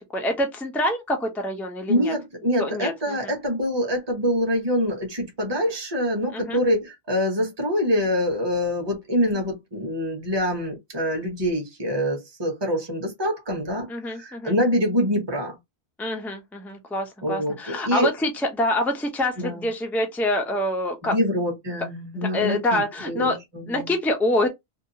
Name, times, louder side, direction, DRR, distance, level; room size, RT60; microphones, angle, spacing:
voice 1, 0.1-2.1 2.6-3.4 6.3-6.6 13.9-14.5 16.0-21.1 22.1-23.4 23.7-24.5, left 1 dB, ahead, 0.4 m, -26 dB
voice 2, 1.9-15.6 17.2-18.1 19.4-19.7 21.0-23.9, equal, 25° right, 0.9 m, -25 dB
2.7 x 2.3 x 2.7 m
omnidirectional pair, 1.1 m